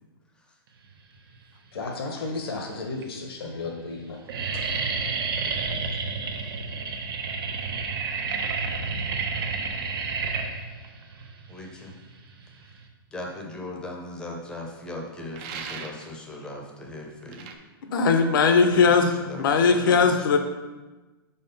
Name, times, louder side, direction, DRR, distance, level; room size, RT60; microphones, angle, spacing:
voice 1, 1.7-4.2 4.5-4.6, left 3 dB, 75° left, 1 dB, 1.1 m, -33 dB
sound 1, 1.7-2.3 2.9-3.0 3.3-3.7 3.9-12.9, right 4 dB, 70° right, 0.9 m, -30 dB
voice 2, 11.5-12.0 13.1-17.5 18.7-20.4, left 1 dB, 5° left, 0 dB, 0.7 m, -38 dB
sound 2, 15.3-16.2 17.3-17.6, right 6 dB, 30° right, 0.5 m, -38 dB
voice 3, 17.9-19.1 19.4-20.4, left 5 dB, 60° left, 7 dB, 0.7 m, -19 dB
4.8 x 4.3 x 5.3 m, 1.2 s
hypercardioid pair, 160°, 13 cm